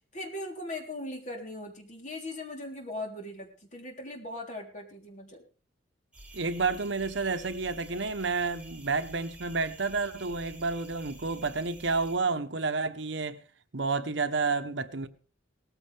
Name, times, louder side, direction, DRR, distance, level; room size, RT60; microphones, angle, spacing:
voice 1, 0.1-5.4, left 1 dB, 40° left, 3.5 m, -39 dB
sound 1, 6.1-12.2, right 2 dB, 5° right, 6.1 m, -49 dB
voice 2, 6.3-13.4 13.7-15.1, right 4 dB, 70° right, 1.0 m, -30 dB
17.5 x 14.5 x 3.5 m
head